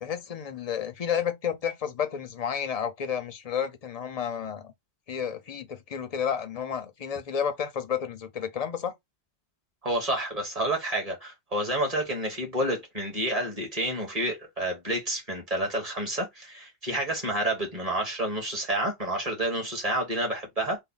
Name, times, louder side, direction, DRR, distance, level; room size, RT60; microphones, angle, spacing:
voice 1, 0.0-4.7 5.1-8.9, left 8 dB, 50° left, 0.5 m, -31 dB
voice 2, 9.8-20.8, right 1 dB, 35° right, 1.3 m, -29 dB
3.3 x 2.1 x 3.9 m
omnidirectional pair, 1.2 m